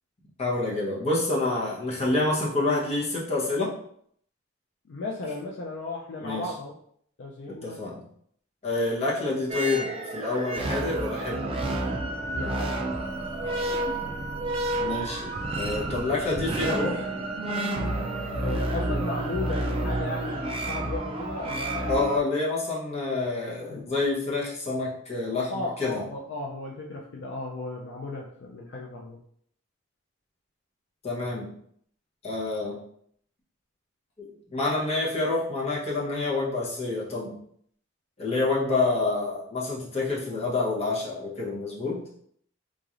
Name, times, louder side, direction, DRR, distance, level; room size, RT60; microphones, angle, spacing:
voice 1, 0.4-3.7 6.2-6.5 7.6-8.0 8.6-11.5 14.8-17.0 21.9-26.0 31.0-31.5 32.2-32.8 34.2-37.3 38.2-42.0, left 2 dB, 30° left, -5 dB, 1.0 m, -28 dB
voice 2, 4.9-6.7 7.2-7.9 12.3-12.8 18.4-22.2 23.7-23.8 25.5-29.2, left 2 dB, 60° left, -1 dB, 0.4 m, -35 dB
sound 1, 9.5-22.2, right 2 dB, 30° right, 0.4 m, -30 dB
3.7 x 3.0 x 2.5 m, 0.66 s
head